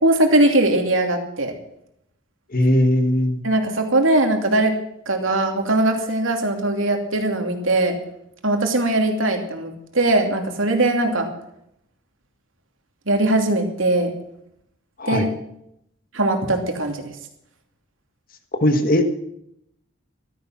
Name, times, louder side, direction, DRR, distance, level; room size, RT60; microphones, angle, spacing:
voice 1, 0.0-1.5 3.4-4.7 5.1-8.0 8.4-11.3 13.1-14.1 15.1-15.3 16.1-17.1, right 2 dB, 70° right, 3 dB, 2.8 m, -20 dB
voice 2, 2.5-3.4 15.0-15.3 18.6-19.0, left 1 dB, 45° left, 6 dB, 1.6 m, -18 dB
14.5 x 13.5 x 6.1 m, 0.76 s
head